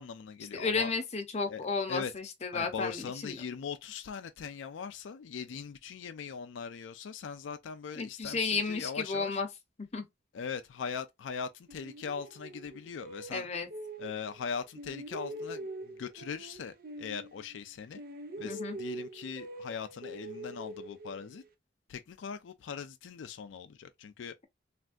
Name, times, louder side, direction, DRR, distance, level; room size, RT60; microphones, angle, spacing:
voice 1, 0.0-0.9 1.5-2.1 2.5-9.4 10.3-13.5 14.0-18.0 18.4-21.4 21.9-24.3, left 6 dB, 85° left, 0.4 m, -40 dB
voice 2, 0.5-3.4 7.9-9.5 9.9-10.0 13.3-13.7 18.4-18.8, left 4 dB, 35° left, 0.7 m, -33 dB
sound 1, 11.7-14.4 14.7-17.7 17.9-21.5, right 1 dB, 50° right, 0.6 m, -44 dB
3.3 x 2.5 x 2.3 m
head